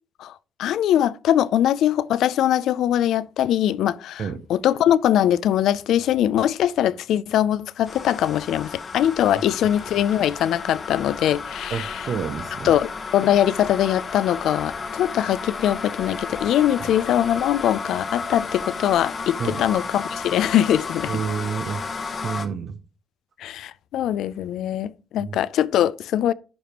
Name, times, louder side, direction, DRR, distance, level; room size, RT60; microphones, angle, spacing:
voice 1, 0.6-4.2 4.5-11.9 12.6-21.1 23.4-26.3, left 11 dB, 75° left, 0.4 m, -22 dB
sound 1, 7.8-22.5, left 4 dB, 45° left, 1.0 m, -33 dB
voice 2, 11.7-12.7 16.8-16.9 19.4-19.6 21.1-21.8 22.2-22.8 25.2-25.4, right 6 dB, 60° right, 0.6 m, -29 dB
11.0 x 5.1 x 2.9 m
supercardioid pair, 70°, 0 cm